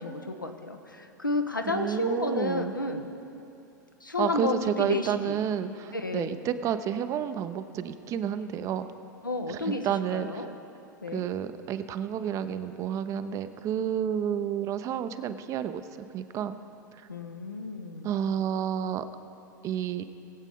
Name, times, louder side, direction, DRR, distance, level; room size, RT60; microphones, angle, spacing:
voice 1, 0.0-3.1 4.0-5.4 5.9-6.4 9.2-10.5 11.0-11.2 17.1-18.1, left 2 dB, 90° left, 5 dB, 0.9 m, -31 dB
voice 2, 1.6-2.7 4.2-8.9 9.5-10.5 11.1-16.6 16.9-17.1 18.0-19.0 19.6-20.0, right 9 dB, 30° right, 11 dB, 0.5 m, -30 dB
20.0 x 8.2 x 3.6 m, 2.7 s
figure-of-eight pair, 90°, 10 cm